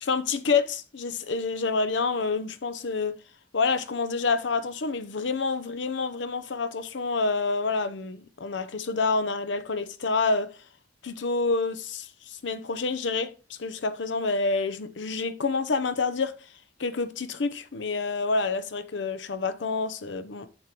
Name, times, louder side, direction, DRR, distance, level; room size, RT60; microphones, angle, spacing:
voice 1, 0.0-3.1 3.5-10.5 11.0-16.3 16.8-20.5, left 4 dB, 80° left, 0.7 m, -28 dB
7.2 x 6.7 x 3.0 m
head